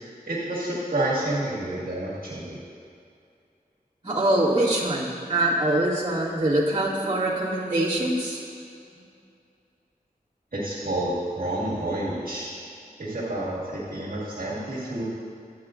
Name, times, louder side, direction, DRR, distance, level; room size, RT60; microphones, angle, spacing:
voice 1, 0.3-2.6 10.5-12.5 13.0-15.0, right 1 dB, 65° right, -8 dB, 1.8 m, -29 dB
voice 2, 4.0-8.4, right 1 dB, 25° right, -10 dB, 2.1 m, -24 dB
10.5 x 8.8 x 2.5 m, 2.4 s
wide cardioid pair, 65°, 16 cm